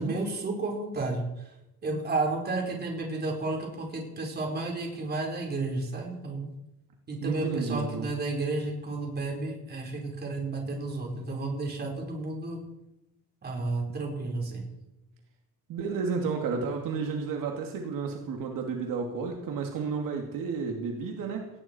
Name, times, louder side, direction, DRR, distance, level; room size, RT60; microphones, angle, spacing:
voice 1, 0.0-1.5 1.8-6.5 7.1-12.6 13.4-14.6, right 2 dB, 25° right, 1 dB, 4.3 m, -32 dB
voice 2, 7.2-8.1 15.7-21.5, right 5 dB, 65° right, 2 dB, 2.6 m, -32 dB
18.5 x 17.5 x 4.5 m, 0.89 s
cardioid pair, 170°, 36 cm